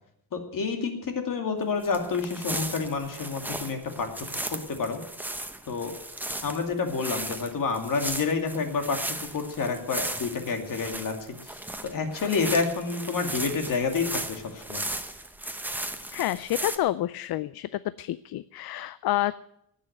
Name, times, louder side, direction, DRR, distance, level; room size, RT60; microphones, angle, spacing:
voice 1, 0.3-5.0 5.7-5.9 6.4-14.8, left 4 dB, 60° left, 4 dB, 2.6 m, -29 dB
sound 1, 1.8-16.8, right 1 dB, 5° right, 0.8 m, -36 dB
voice 2, 16.1-17.7 18.0-19.4, left 14 dB, 75° left, 16 dB, 0.5 m, -28 dB
18.5 x 6.5 x 9.2 m, 0.77 s
wide cardioid pair, 165°, 38 cm